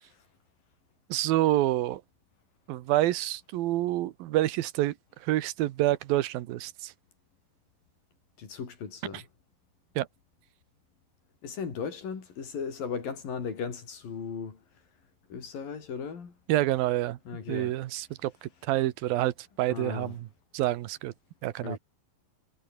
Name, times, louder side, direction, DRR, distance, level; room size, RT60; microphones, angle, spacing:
voice 1, 1.1-2.0 2.7-4.9 5.2-6.9 9.1-9.2 10.0-10.1 16.5-17.2 17.5-20.3 20.5-21.1 21.4-21.8, right 15 dB, 85° right, 2.8 m, -27 dB
voice 2, 8.4-9.3 11.4-14.6 15.3-16.3 17.3-17.8 19.7-20.1 21.6-21.8, left 6 dB, 70° left, 5.9 m, -36 dB
omnidirectional pair, 4.1 m